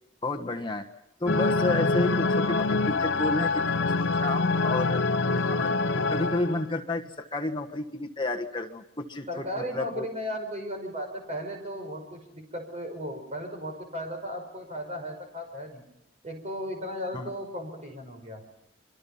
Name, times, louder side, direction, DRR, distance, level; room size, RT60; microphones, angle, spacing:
voice 1, 0.2-0.9 1.2-5.0 5.5-10.0 17.1-17.3, left 2 dB, 25° left, 5 dB, 1.5 m, -31 dB
sound 1, 1.3-6.7, left 3 dB, 75° left, 0.9 m, -25 dB
voice 2, 9.3-15.8 16.2-18.4, equal, 35° right, 4 dB, 5.6 m, -36 dB
27.0 x 24.0 x 5.7 m, 0.81 s
head